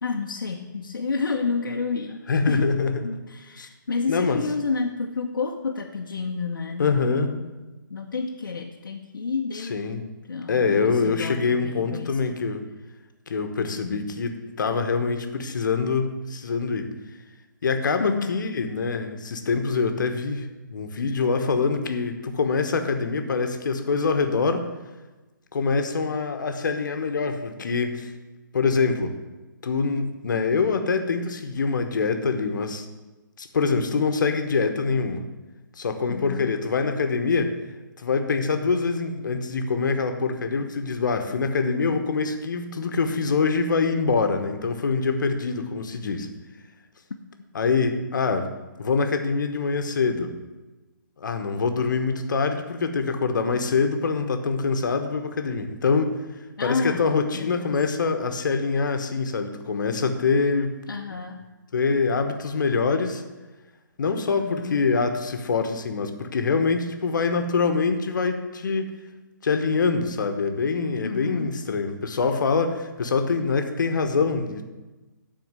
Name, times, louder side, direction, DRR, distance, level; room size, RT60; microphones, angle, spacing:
voice 1, 0.0-2.7 3.0-7.6 7.9-9.8 10.3-12.4 18.0-18.4 36.1-36.5 56.6-57.8 60.8-61.4 64.4-64.8 71.0-71.6, left 4 dB, 85° left, 1 dB, 0.9 m, -30 dB
voice 2, 2.3-3.0 3.6-3.7 4.1-4.4 6.8-7.3 9.7-10.0 10.5-12.6 13.3-16.9 17.6-24.7 25.5-28.1 28.5-29.1 29.6-32.8 33.4-35.2 35.8-37.6 38.0-46.3 47.5-48.5 48.8-50.4 51.2-56.1 56.6-60.7 61.7-63.2 64.0-68.9 69.4-74.6, left 4 dB, 70° left, 7 dB, 1.1 m, -24 dB
9.5 x 4.3 x 7.5 m, 1.2 s
hypercardioid pair, 155°, 11 cm